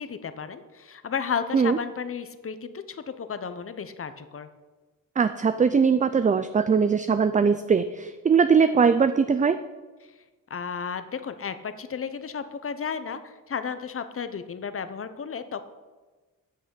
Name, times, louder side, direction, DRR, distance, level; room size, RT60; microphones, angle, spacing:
voice 1, 0.0-4.5 10.5-15.6, left 6 dB, 40° left, 11 dB, 0.8 m, -33 dB
voice 2, 5.2-9.6, right 6 dB, 25° right, 11 dB, 0.4 m, -21 dB
8.5 x 6.3 x 6.8 m, 1.3 s
cardioid pair, 95°, 34 cm